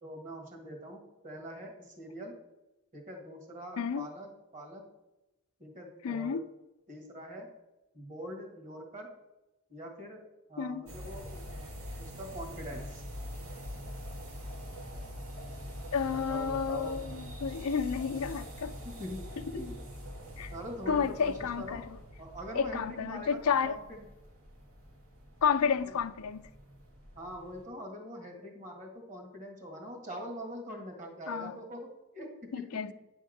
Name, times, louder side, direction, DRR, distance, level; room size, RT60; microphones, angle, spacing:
voice 1, 0.0-2.4 2.9-4.8 5.6-6.4 6.9-7.5 7.9-9.1 9.7-10.2 10.5-11.7 12.0-13.0 16.0-17.1 18.8-19.2 19.5-19.8 20.5-21.8 22.2-24.0 25.8-25.9 27.2-32.6, equal, 35° right, 1.8 m, -43 dB
voice 2, 6.0-6.4 10.6-10.8 15.9-18.7 20.4-20.5 20.9-22.0 22.6-23.8 25.4-26.5 31.3-31.5 32.5-32.9, left 6 dB, 85° left, 0.5 m, -31 dB
sound 1, 10.9-27.7, equal, 70° right, 1.7 m, -44 dB
9.3 x 3.6 x 6.5 m
head